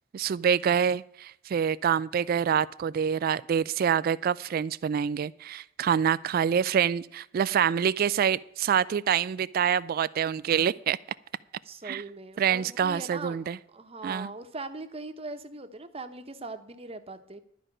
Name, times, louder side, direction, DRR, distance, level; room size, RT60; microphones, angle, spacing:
voice 1, 0.1-11.0 11.8-12.0 12.4-13.6 14.0-14.3, right 8 dB, 50° right, 17 dB, 0.3 m, -26 dB
voice 2, 11.6-13.5 13.7-17.4, right 3 dB, 30° right, 8 dB, 1.0 m, -40 dB
12.0 x 5.1 x 8.7 m, 0.73 s
head